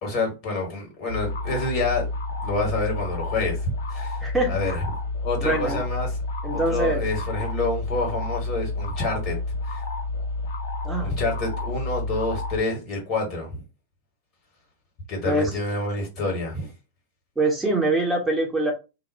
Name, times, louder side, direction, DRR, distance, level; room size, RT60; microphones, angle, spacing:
voice 1, 0.0-2.1 2.4-4.2 4.5-4.8 5.2-6.2 6.5-9.3 9.7-9.8 11.0-13.6 15.1-16.7, left 2 dB, 40° left, 1.5 m, -28 dB
sound 1, 1.1-12.6, left 2 dB, 60° left, 0.6 m, -30 dB
voice 2, 4.2-4.8 5.4-5.8 6.4-7.0 10.8-11.1 15.3-15.5 17.4-18.7, right 2 dB, 10° right, 0.8 m, -24 dB
2.8 x 2.0 x 3.2 m
figure-of-eight pair, 90°, 0 cm